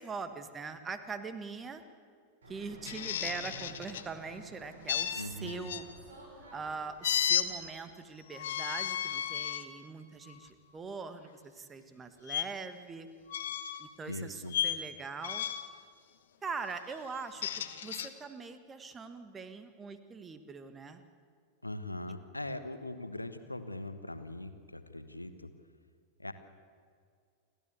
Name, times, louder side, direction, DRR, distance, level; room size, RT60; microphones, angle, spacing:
voice 1, 0.0-1.8 2.5-5.8 6.5-13.1 13.8-15.4 16.4-17.5 17.8-21.0, right 5 dB, 20° right, 10 dB, 1.6 m, -42 dB
Fixed-wing aircraft airplane, 2.4-7.6, right 1 dB, 65° right, 6.7 m, -53 dB
sound 1, 2.8-4.1 4.9-5.8 7.0-7.5 8.3-9.7 10.3-10.5 12.3-12.4 13.3-13.9 14.5-14.8 15.2-15.7 17.1-18.1, left 10 dB, 60° left, 1.1 m, -33 dB
voice 2, 5.2-5.7 14.1-14.6 21.6-25.5 26.2-26.3, left 1 dB, 85° left, 10 dB, 1.3 m, -41 dB
29.0 x 12.5 x 8.3 m, 2.1 s
figure-of-eight pair, 90°, 0 cm